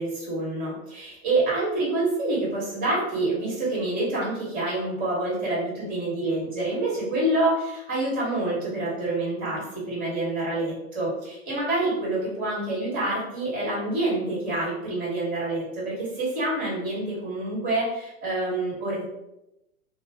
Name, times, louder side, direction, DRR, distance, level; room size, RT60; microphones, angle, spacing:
voice 1, 0.0-19.0, right 2 dB, 20° right, -5 dB, 1.3 m, -27 dB
2.4 x 2.1 x 3.4 m, 0.89 s
figure-of-eight pair, 115°, 42 cm